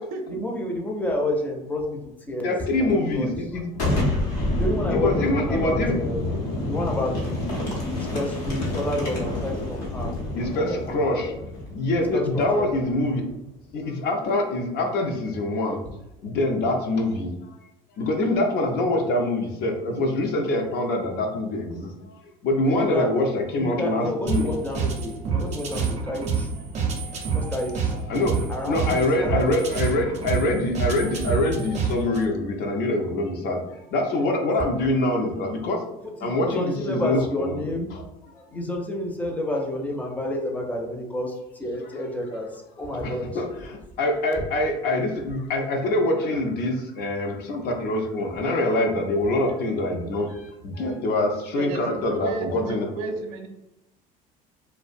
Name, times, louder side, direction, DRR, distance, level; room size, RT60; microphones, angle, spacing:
voice 1, 0.3-2.0 2.3-3.3 4.6-6.2 6.7-10.1 10.4-11.4 12.1-12.7 22.6-23.1 23.5-26.5 27.3-28.0 28.5-29.7 36.2-37.9 38.3-43.2 48.8-48.9, left 1 dB, 10° left, 0 dB, 0.5 m, -30 dB
voice 2, 2.4-3.6 4.9-5.9 10.4-11.3 11.7-13.3 13.7-15.8 16.2-17.6 18.0-22.1 22.4-24.5 28.1-28.4 28.7-35.9 36.2-37.6 37.9-38.0 43.0-53.2, left 1 dB, 60° left, 2 dB, 0.5 m, -25 dB
Boom, 3.7-13.3, left 1 dB, 90° left, 0.9 m, -28 dB
sound 1, 24.3-32.3, right 5 dB, 35° right, 0.5 m, -28 dB
voice 3, 51.5-53.5, right 3 dB, 85° right, 4 dB, 0.5 m, -33 dB
2.3 x 2.1 x 2.5 m, 0.91 s
supercardioid pair, 95°, 19 cm